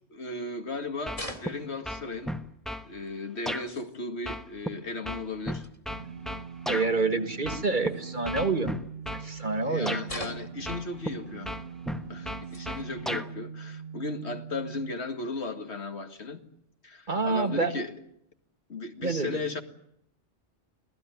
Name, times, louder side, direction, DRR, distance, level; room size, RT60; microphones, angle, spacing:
voice 1, 0.1-2.3 2.8-5.7 9.2-11.6 12.1-16.4 16.8-18.0 18.7-19.6, left 3 dB, 65° left, 2.3 m, -36 dB
sound 1, 1.1-1.9 3.1-3.2 3.5-4.0 5.6-5.8 7.8-8.5 9.0-9.2 10.0-10.6 11.7-11.8 12.2-12.8 13.3-13.4 14.5-14.6 15.7-15.8 17.2-17.5, left 1 dB, 30° left, 2.5 m, -43 dB
sound 2, 1.1-1.6 1.8-2.9 3.5-3.6 4.3-6.9 7.4-7.9 8.2-9.3 9.9-10.0 10.7-11.1 11.4-13.3, equal, ahead, 1.1 m, -34 dB
sound 3, 5.9-14.9, right 7 dB, 60° right, 1.6 m, -42 dB
voice 2, 6.7-8.8 9.1-10.0 17.1-17.7 19.0-19.4, right 3 dB, 45° right, 1.9 m, -27 dB
26.0 x 17.5 x 9.4 m
omnidirectional pair, 1.2 m